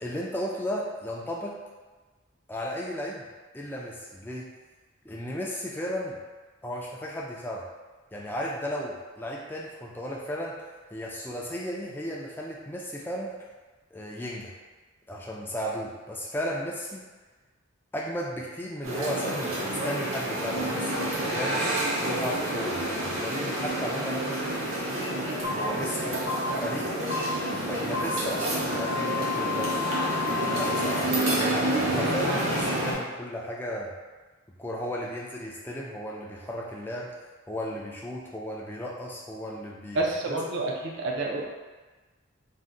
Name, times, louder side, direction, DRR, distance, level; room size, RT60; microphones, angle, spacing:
voice 1, 0.0-1.6 2.5-3.3 3.5-4.5 5.0-6.2 6.6-7.6 8.1-10.5 10.9-13.4 13.9-14.5 15.1-17.1 17.9-24.7 25.5-26.2 26.6-26.9 27.5-29.9 30.3-31.4 31.7-33.9 34.6-37.1 37.5-40.0 40.3-40.4, equal, 10° left, -4 dB, 0.3 m, -35 dB
sound 1, 18.8-32.9, right 1 dB, 90° right, 0.8 m, -28 dB
sound 2, 25.4-25.5 26.3-26.4 27.1-27.2 27.9-28.0 28.7-30.8, left 10 dB, 65° left, 0.6 m, -32 dB
voice 2, 39.9-41.5, right 2 dB, 60° right, -1 dB, 0.5 m, -29 dB
2.6 x 2.1 x 3.6 m, 1.3 s
head